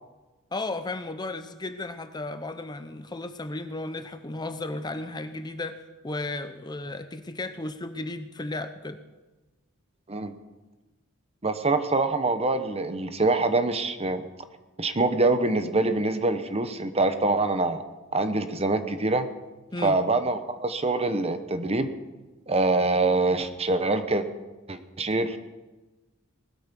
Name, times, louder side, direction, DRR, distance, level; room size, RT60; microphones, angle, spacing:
voice 1, 0.5-5.8 6.0-9.0 19.7-20.0, left 2 dB, 20° left, 10 dB, 0.7 m, -34 dB
voice 2, 11.4-14.3 14.8-17.8 18.1-19.3 19.8-21.9 22.5-24.3 24.7-25.4, right 2 dB, 30° right, 10 dB, 1.0 m, -25 dB
19.5 x 13.0 x 5.4 m, 1.2 s
head